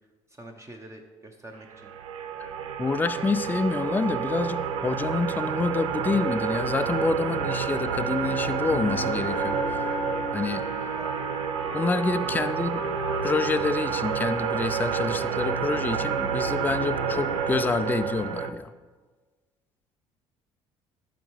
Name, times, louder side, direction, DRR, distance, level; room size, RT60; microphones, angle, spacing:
voice 1, 0.4-1.9 11.0-11.1 12.2-12.5, right 1 dB, 20° right, 2 dB, 0.8 m, -44 dB
sound 1, 1.7-18.5, right 7 dB, 80° right, 0.4 m, -29 dB
voice 2, 2.8-9.8 10.3-10.6 11.7-12.8 13.2-18.7, left 4 dB, 10° left, 11 dB, 0.3 m, -27 dB
Wind instrument woodwind instrument, 8.7-13.6, left 2 dB, 90° left, 1.1 m, -35 dB
12.0 x 4.2 x 3.2 m, 1.4 s
hypercardioid pair, 60°, 16 cm